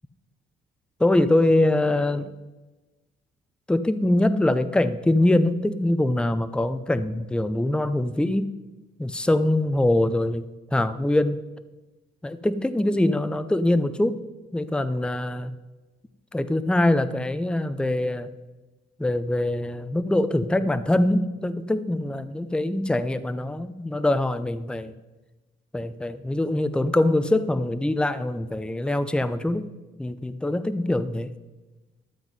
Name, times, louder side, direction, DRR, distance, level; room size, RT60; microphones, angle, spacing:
voice 1, 1.0-2.3 3.7-8.5 9.0-10.5 10.7-11.4 12.2-14.2 14.5-15.5 16.3-18.3 19.0-24.9 25.7-29.7 30.0-31.3, left 1 dB, 5° left, 12 dB, 0.6 m, -23 dB
12.5 x 7.6 x 5.4 m, 1.2 s
cardioid pair, 90°, 20 cm